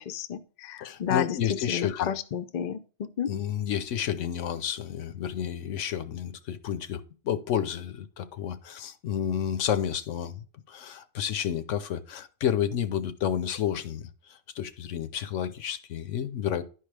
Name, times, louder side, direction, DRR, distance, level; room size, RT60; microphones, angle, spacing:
voice 1, 0.0-3.3, left 9 dB, 50° left, 0.6 m, -31 dB
voice 2, 0.8-2.1 3.3-16.6, left 9 dB, 75° left, 1.0 m, -31 dB
11.0 x 4.7 x 3.3 m
omnidirectional pair, 1.3 m